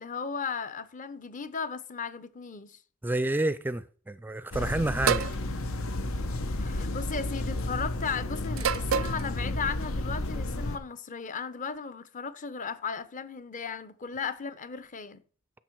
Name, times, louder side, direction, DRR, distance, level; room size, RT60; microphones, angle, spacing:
voice 1, 0.0-2.8 6.6-15.2, left 5 dB, 40° left, 0.7 m, -36 dB
voice 2, 3.0-5.3, right 1 dB, 10° right, 0.4 m, -29 dB
sound 1, 4.5-10.8, left 1 dB, 90° left, 1.0 m, -32 dB
sound 2, 5.1-5.4 6.6-6.9 8.6-9.2, right 7 dB, 85° right, 0.6 m, -27 dB
10.5 x 6.9 x 4.6 m
head